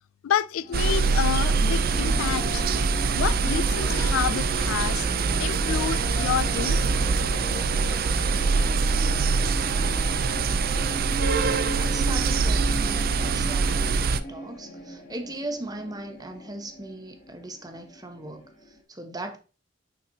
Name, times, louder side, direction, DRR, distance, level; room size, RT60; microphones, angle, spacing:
voice 1, 0.2-2.6 3.1-5.1 5.4-6.8, left 9 dB, 85° left, 0.3 m, -29 dB
sound 1, 0.6-18.8, equal, 45° left, 1.8 m, -38 dB
sound 2, 0.7-14.2, right 4 dB, 45° right, 0.4 m, -24 dB
sound 3, 3.8-6.0, equal, 5° left, 1.1 m, -46 dB
voice 2, 11.7-19.4, right 2 dB, 20° right, 0.9 m, -38 dB
8.8 x 4.1 x 2.8 m
head